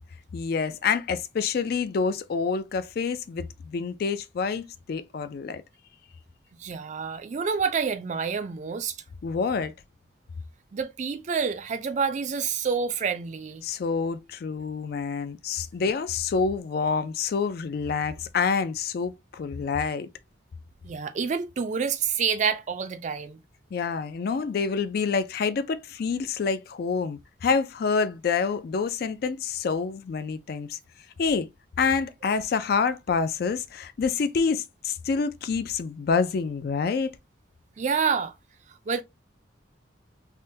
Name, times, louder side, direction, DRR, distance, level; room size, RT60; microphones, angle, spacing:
voice 1, 0.3-5.6 9.2-9.7 13.6-20.1 23.7-30.8 31.2-31.5 31.8-37.1, left 5 dB, 50° left, 0.3 m, -27 dB
voice 2, 6.6-9.0 10.7-13.6 20.8-23.4 37.8-38.3 38.9-39.0, right 6 dB, 40° right, 0.4 m, -28 dB
3.6 x 2.1 x 2.6 m
head